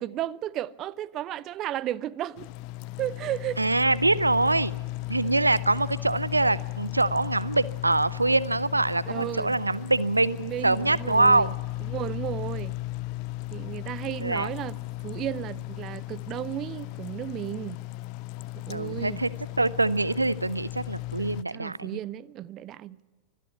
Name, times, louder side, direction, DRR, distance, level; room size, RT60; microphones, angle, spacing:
voice 1, 0.0-2.5 3.0-3.7 9.1-9.7 10.4-11.5 11.9-12.8 13.5-14.8 15.0-17.8 18.7-19.2 21.2-23.0, right 12 dB, 35° right, 0.5 m, -34 dB
sound 1, 2.4-21.4, left 18 dB, 45° left, 0.5 m, -36 dB
voice 2, 3.6-4.7 5.1-11.5 14.2-14.5 18.7-19.3 19.6-22.0, right 2 dB, 85° right, 0.5 m, -24 dB
24.5 x 11.0 x 9.6 m
figure-of-eight pair, 90°, 0 cm